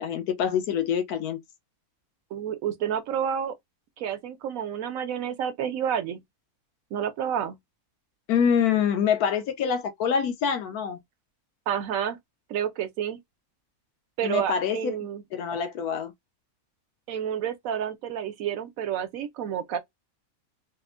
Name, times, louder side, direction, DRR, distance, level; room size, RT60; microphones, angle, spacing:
voice 1, 0.0-1.4 8.3-11.0 14.2-14.9 15.3-16.1, left 7 dB, 90° left, 1.2 m, -25 dB
voice 2, 2.3-3.5 4.0-6.2 6.9-7.6 11.7-12.2 12.5-13.2 14.2-15.2 17.1-19.8, right 9 dB, 70° right, 1.0 m, -29 dB
3.4 x 2.1 x 2.4 m
omnidirectional pair, 1.5 m